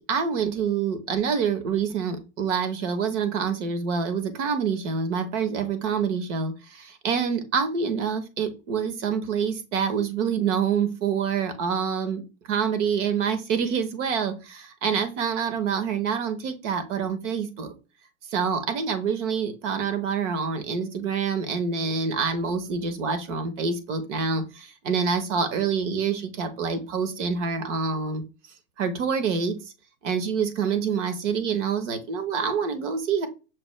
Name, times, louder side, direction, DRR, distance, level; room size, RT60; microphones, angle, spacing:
voice 1, 0.0-12.2 12.5-17.7 18.3-28.2 28.8-29.6 30.0-33.3, right 6 dB, 60° right, 9 dB, 1.1 m, -26 dB
6.1 x 2.3 x 3.2 m, 0.30 s
supercardioid pair, 150°, 41 cm